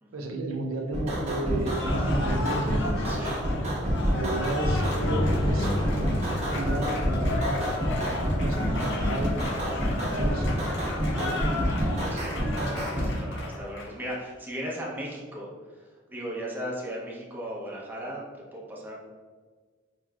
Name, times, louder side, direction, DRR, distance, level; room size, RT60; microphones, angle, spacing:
voice 1, 0.1-3.3 4.0-5.7 6.1-6.2 6.4-9.3 10.0-10.6 11.1-11.5, right 2 dB, 75° right, 3 dB, 0.5 m, -34 dB
sound 1, 0.9-13.1, equal, 35° right, 0.9 m, -27 dB
Cheering / Applause, 1.6-14.2, left 3 dB, 65° left, 0.6 m, -35 dB
voice 2, 3.0-3.4 12.1-12.3 13.0-18.2 18.5-18.9, equal, 10° right, -4 dB, 0.7 m, -37 dB
sound 2, 4.6-8.3, left 1 dB, 25° left, 0.4 m, -32 dB
4.7 x 3.0 x 2.3 m, 1.5 s
head